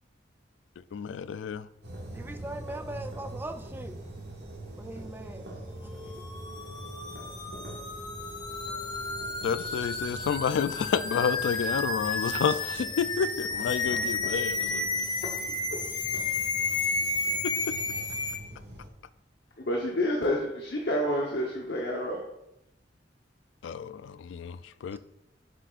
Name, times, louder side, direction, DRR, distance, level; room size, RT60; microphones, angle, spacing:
voice 1, 0.9-1.7 9.4-14.9 17.4-17.5 23.6-25.0, left 6 dB, 90° left, 0.3 m, -30 dB
sound 1, 1.8-18.9, right 1 dB, 70° right, 1.7 m, -43 dB
voice 2, 2.1-3.9 4.8-5.4 5.8-6.1 24.9-25.0, right 1 dB, 10° right, 0.4 m, -40 dB
sound 2, 6.1-18.4, left 3 dB, 25° left, 0.7 m, -32 dB
voice 3, 19.6-22.2, equal, 60° left, 1.0 m, -29 dB
7.5 x 6.7 x 2.5 m
head